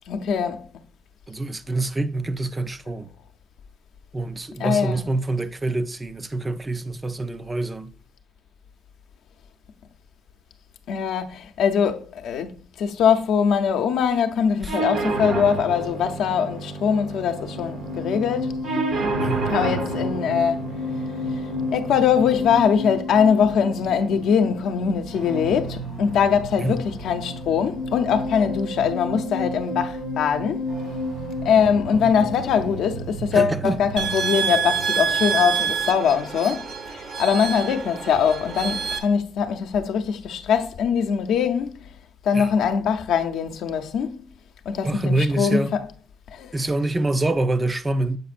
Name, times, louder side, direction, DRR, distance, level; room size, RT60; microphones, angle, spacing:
voice 1, 0.1-0.7 4.6-5.0 10.9-18.6 19.5-20.7 21.7-30.7 31.4-41.8 42.2-44.3 44.7-45.6 46.3-46.5, left 7 dB, 80° left, 0.6 m, -22 dB
voice 2, 1.3-3.1 4.1-8.0 14.6-14.8 19.2-19.5 26.6-26.9 32.0-32.3 33.3-33.8 42.3-42.5 44.8-45.8 46.5-48.2, right 2 dB, 20° right, 0.3 m, -26 dB
sound 1, 14.7-22.7, right 3 dB, 70° right, 1.0 m, -30 dB
sound 2, 17.3-35.7, left 1 dB, 85° right, 3.3 m, -32 dB
sound 3, 34.0-39.0, right 7 dB, 50° right, 0.8 m, -27 dB
7.6 x 5.1 x 2.4 m
cardioid pair, 135°, 0 cm